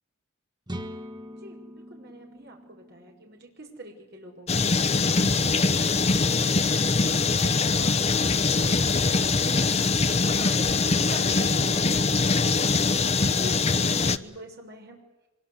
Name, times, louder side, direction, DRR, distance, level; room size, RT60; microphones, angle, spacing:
sound 1, 0.7-4.4, equal, 20° right, 1.5 m, -42 dB
voice 1, 1.9-6.8 7.1-15.0, right 1 dB, 55° right, 1 dB, 6.2 m, -44 dB
sound 2, 4.5-14.2, left 4 dB, 30° left, 0.8 m, -23 dB
24.5 x 22.0 x 8.3 m, 1.0 s
head